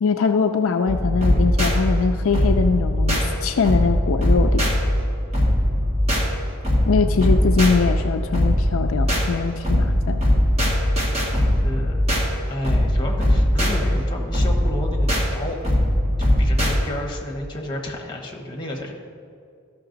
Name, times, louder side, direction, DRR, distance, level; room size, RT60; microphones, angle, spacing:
voice 1, 0.0-4.6 6.9-10.2, left 5 dB, 65° left, 6 dB, 0.4 m, -22 dB
sound 1, 0.9-16.8, equal, 30° right, 1.7 m, -20 dB
voice 2, 7.0-7.5 11.1-11.3 11.6-12.1 12.5-15.6 16.2-18.9, left 1 dB, 20° left, 1 dB, 1.2 m, -32 dB
13.0 x 5.9 x 3.9 m, 2.3 s
head